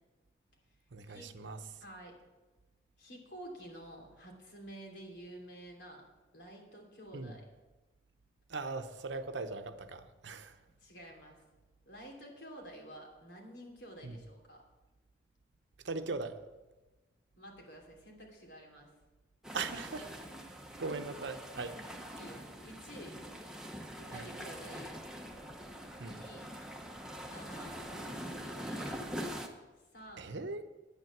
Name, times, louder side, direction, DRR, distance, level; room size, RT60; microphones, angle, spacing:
voice 1, 0.9-1.6 7.1-7.3 8.5-10.6 14.0-14.2 15.8-16.4 19.5-20.1 20.8-21.8 24.1-24.3 26.0-26.2 30.2-30.6, right 3 dB, 80° right, 9 dB, 0.8 m, -39 dB
voice 2, 1.8-2.1 3.0-6.0 6.3-7.4 10.8-11.4 11.8-14.6 17.4-18.9 20.4-20.5 21.8-23.2 23.9-25.0 26.0-26.5 27.2-29.0 29.9-30.3, right 1 dB, 80° left, 0 dB, 2.8 m, -50 dB
sound 1, 19.4-29.5, equal, 5° right, 0.9 m, -44 dB
9.9 x 9.3 x 5.9 m, 1.1 s
head